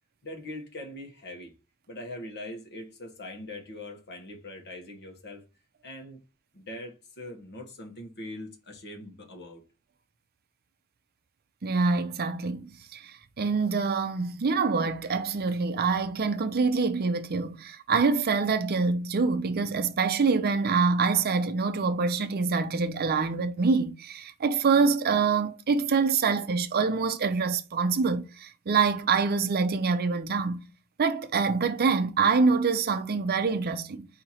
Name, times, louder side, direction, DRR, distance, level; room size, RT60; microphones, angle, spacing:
voice 1, 0.2-1.5 1.9-5.4 5.8-6.2 6.5-9.6, left 1 dB, 50° left, 1.2 m, -42 dB
voice 2, 11.6-30.6 31.0-34.1, right 4 dB, 45° right, 0.5 m, -25 dB
4.4 x 2.8 x 4.2 m
head